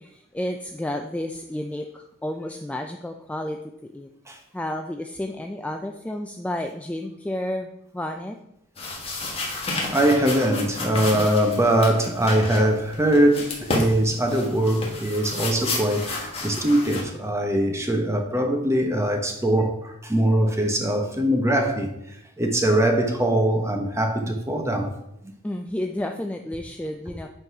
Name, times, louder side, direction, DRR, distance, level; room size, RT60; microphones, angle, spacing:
voice 1, 0.0-4.1 4.5-8.4 25.4-27.3, left 1 dB, 5° left, 0.3 m, -31 dB
sound 1, 8.8-17.0, left 2 dB, 30° left, 1.4 m, -31 dB
voice 2, 9.8-21.9 22.4-24.9 25.2-25.3, right 1 dB, 15° right, 0.9 m, -22 dB
8.1 x 4.0 x 4.7 m
head